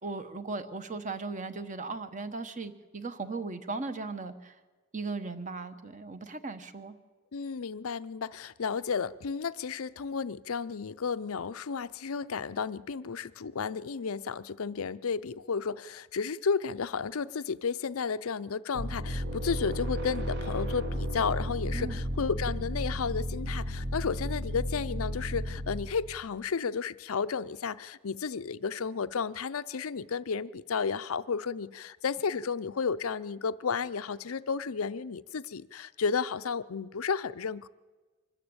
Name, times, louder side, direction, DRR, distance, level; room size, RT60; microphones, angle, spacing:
voice 1, 0.0-4.5 4.9-7.0 21.7-22.0, right 3 dB, 35° right, 10 dB, 1.1 m, -37 dB
voice 2, 7.3-37.7, left 5 dB, 80° left, 14 dB, 0.6 m, -32 dB
sound 1, 18.7-26.2, equal, 55° right, 1.6 m, -34 dB
24.0 x 13.5 x 8.8 m, 1.3 s
head